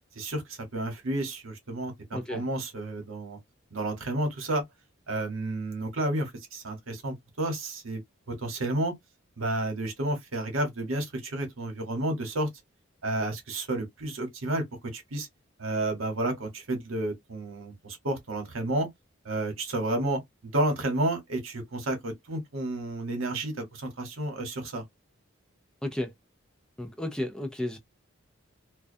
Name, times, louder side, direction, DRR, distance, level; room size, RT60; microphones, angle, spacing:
voice 1, 0.1-3.4 3.7-4.6 5.1-8.0 8.3-8.9 9.4-12.5 13.0-15.3 15.6-18.9 19.2-20.2 20.5-24.8, right 1 dB, 85° right, 1.0 m, -31 dB
voice 2, 2.1-2.5 25.8-26.1 26.8-27.8, left 1 dB, 5° left, 0.3 m, -32 dB
2.3 x 2.2 x 2.5 m
head